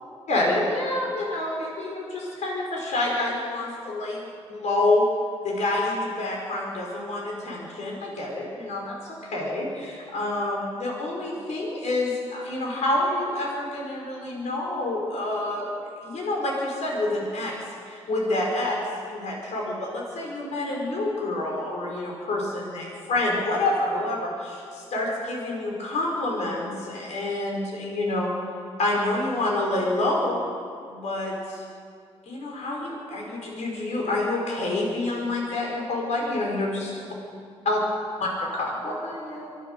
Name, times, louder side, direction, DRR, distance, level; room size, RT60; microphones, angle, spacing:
voice 1, 0.3-5.0 5.4-15.7 16.0-17.5 17.9-18.8 19.0-28.3 28.8-30.4 30.9-31.6 32.3-37.1 37.6-37.8 38.2-39.5, left 2 dB, 70° left, -2 dB, 5.2 m, -28 dB
23.5 x 16.5 x 6.8 m, 2.3 s
supercardioid pair, 50°, 12 cm